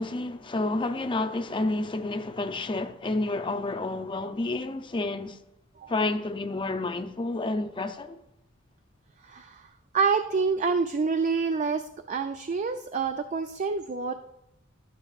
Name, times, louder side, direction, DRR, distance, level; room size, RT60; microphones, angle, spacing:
voice 1, 0.0-5.4 5.9-8.2, left 2 dB, 25° left, 0.5 m, -30 dB
voice 2, 9.2-9.7 9.9-14.1, right 5 dB, 35° right, 0.4 m, -27 dB
11.5 x 9.7 x 2.4 m
head